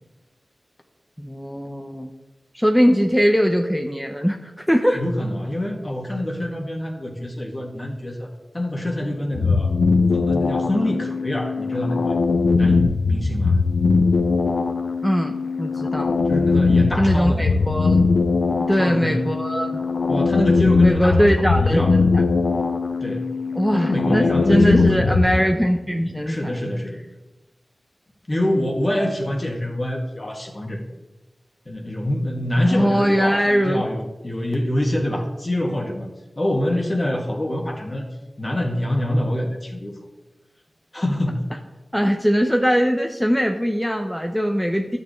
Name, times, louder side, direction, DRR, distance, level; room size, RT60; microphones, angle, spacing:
voice 1, 1.2-2.1 2.5-5.0 15.0-16.2 17.0-18.1 18.7-19.8 20.8-21.8 22.1-22.2 23.5-24.2 24.5-26.6 32.6-33.8 41.9-45.0, equal, ahead, 3 dB, 0.8 m, -21 dB
voice 2, 4.9-9.7 10.1-12.2 12.6-13.6 16.3-17.6 18.8-19.2 20.1-21.3 21.5-22.0 23.0-25.2 26.3-27.0 28.3-30.8 31.7-36.1 36.3-38.1 38.4-39.9 40.9-41.4, left 1 dB, 40° left, 1 dB, 1.9 m, -25 dB
sound 1, 9.3-25.4, left 4 dB, 85° left, 0.5 m, -20 dB
12.0 x 6.9 x 3.2 m, 1.1 s
cardioid pair, 40°, 0 cm